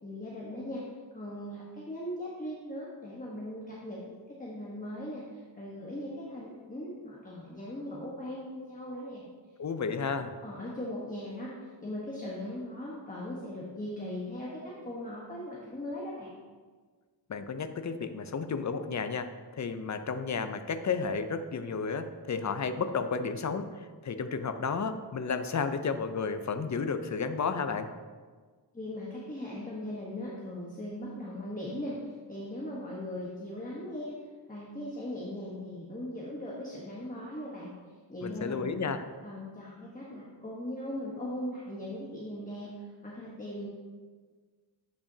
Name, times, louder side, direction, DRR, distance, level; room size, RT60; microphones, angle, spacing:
voice 1, 0.0-0.8 1.1-4.0 4.4-9.2 10.4-16.3 28.7-34.2 34.5-37.7 38.1-38.6 39.2-42.7 43.0-43.7, left 1 dB, 20° left, -5 dB, 1.1 m, -39 dB
voice 2, 9.6-10.4 17.3-27.9 38.2-39.0, left 5 dB, 40° left, 9 dB, 0.5 m, -32 dB
8.6 x 5.9 x 2.7 m, 1.5 s
wide cardioid pair, 85°, 44 cm